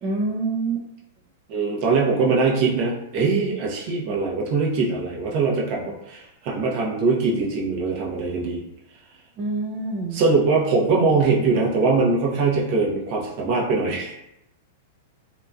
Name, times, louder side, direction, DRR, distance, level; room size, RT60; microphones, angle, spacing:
voice 1, 0.0-0.9 9.4-10.2, right 3 dB, 30° right, -3 dB, 0.4 m, -26 dB
voice 2, 1.5-8.6 10.1-14.2, right 4 dB, 45° right, -3 dB, 0.8 m, -22 dB
2.9 x 2.5 x 2.3 m, 0.85 s
hypercardioid pair, 140°, 0 cm